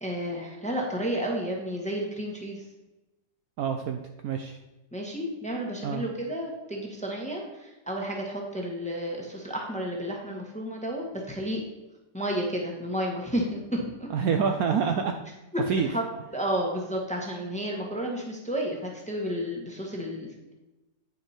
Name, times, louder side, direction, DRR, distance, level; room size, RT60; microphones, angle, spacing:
voice 1, 0.0-2.6 4.9-11.6 12.1-14.1 15.5-16.0 16.3-20.5, equal, 5° left, -1 dB, 1.1 m, -31 dB
voice 2, 3.6-4.6 5.8-6.0 14.1-15.1 15.7-15.9, right 6 dB, 70° right, 5 dB, 0.9 m, -27 dB
9.4 x 4.9 x 4.3 m, 1.0 s
omnidirectional pair, 1.9 m